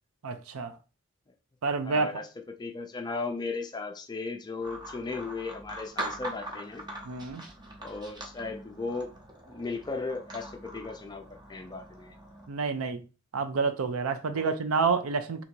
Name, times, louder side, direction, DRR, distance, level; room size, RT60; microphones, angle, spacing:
voice 1, 0.2-0.7 1.6-2.1 7.1-7.4 12.5-13.0 13.3-15.4, right 4 dB, 70° right, 0.5 m, -28 dB
voice 2, 1.8-6.9 7.8-9.1 9.5-12.2 14.3-14.6, left 3 dB, 20° left, 0.4 m, -36 dB
sound 1, 4.6-12.5, right 1 dB, 20° right, 0.7 m, -42 dB
2.9 x 2.6 x 4.4 m
head